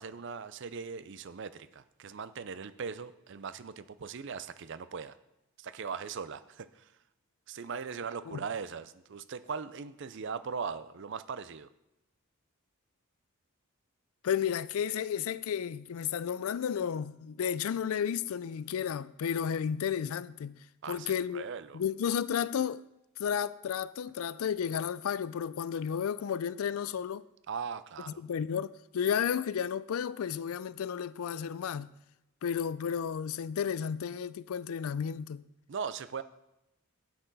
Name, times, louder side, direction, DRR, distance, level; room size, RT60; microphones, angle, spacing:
voice 1, 0.0-5.2 5.6-6.9 7.5-11.7 20.8-21.8 27.5-28.2 35.7-36.2, right 6 dB, 55° right, 0.5 m, -39 dB
voice 2, 14.2-20.6 20.9-21.5 21.7-22.8 23.2-27.2 28.2-31.9 32.4-35.4, left 8 dB, 70° left, 0.4 m, -32 dB
9.7 x 8.6 x 4.1 m
head